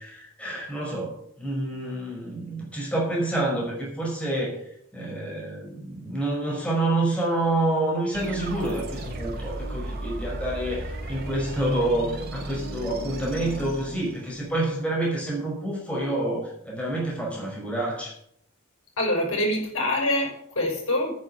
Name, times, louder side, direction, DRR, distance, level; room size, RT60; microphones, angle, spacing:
voice 1, 0.0-4.6 4.9-18.2, right 1 dB, 5° left, -4 dB, 5.5 m, -28 dB
sound 1, 8.1-14.6, right 2 dB, 50° right, 3.0 m, -35 dB
voice 2, 19.0-21.1, left 1 dB, 85° left, 0 dB, 5.9 m, -25 dB
9.8 x 9.1 x 8.8 m, 0.70 s
head